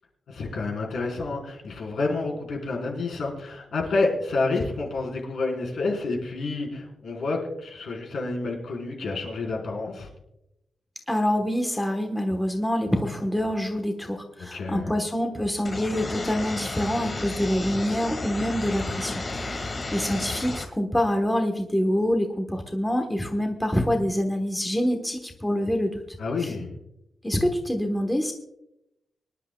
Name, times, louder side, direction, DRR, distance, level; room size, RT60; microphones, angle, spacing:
voice 1, 0.3-10.1 14.5-14.9 26.2-26.7, left 3 dB, 70° left, -1 dB, 4.2 m, -29 dB
voice 2, 11.1-25.9 26.4-26.5 27.2-28.3, equal, 10° left, 4 dB, 1.2 m, -26 dB
sound 1, 15.6-20.6, left 2 dB, 30° left, 1.7 m, -32 dB
25.0 x 11.0 x 2.3 m, 0.85 s
wide cardioid pair, 160°, 0 cm